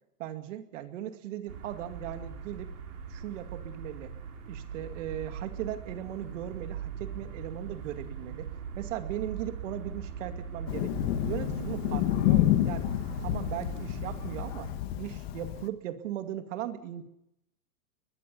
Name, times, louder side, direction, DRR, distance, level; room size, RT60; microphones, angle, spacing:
voice 1, 0.2-2.7 3.1-4.1 4.5-8.5 8.8-12.9 13.2-14.7 15.0-17.0, right 12 dB, 55° right, 7 dB, 2.4 m, -38 dB
sound 1, 1.5-14.7, right 6 dB, 85° right, 5.8 m, -41 dB
Thunder, 10.7-15.7, left 14 dB, 40° left, 1.6 m, -29 dB
22.0 x 21.5 x 5.5 m, 0.81 s
supercardioid pair, 155°, 45 cm